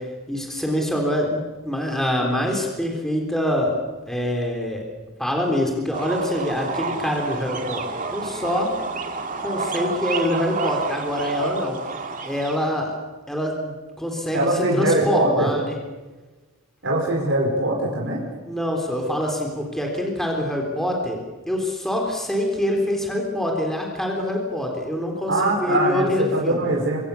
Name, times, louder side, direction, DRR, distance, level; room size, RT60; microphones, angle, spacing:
voice 1, 0.0-3.8 4.1-4.8 5.2-8.7 9.4-11.8 12.2-12.9 13.3-15.7 18.5-21.2 21.5-26.6, left 1 dB, ahead, 0 dB, 3.7 m, -25 dB
sound 1, 5.9-12.7, right 4 dB, 35° right, 2.4 m, -29 dB
voice 2, 14.3-15.5 16.8-18.2 25.3-27.0, right 2 dB, 55° right, -2 dB, 5.4 m, -22 dB
26.0 x 24.5 x 7.1 m, 1.2 s
head